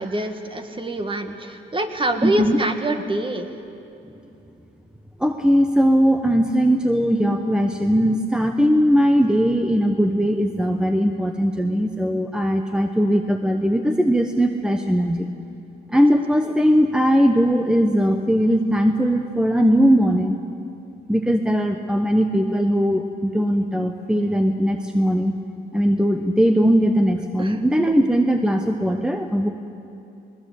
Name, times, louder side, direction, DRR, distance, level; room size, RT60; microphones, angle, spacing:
voice 1, 0.0-3.5 15.9-16.0 27.4-27.6, right 2 dB, 25° right, 6 dB, 2.0 m, -25 dB
voice 2, 2.2-2.6 4.0-4.1 5.2-15.3 15.9-20.4 21.1-25.3 25.7-29.5, equal, 5° right, 5 dB, 1.1 m, -19 dB
21.0 x 20.0 x 8.4 m, 2.7 s
cardioid pair, 90°, 20 cm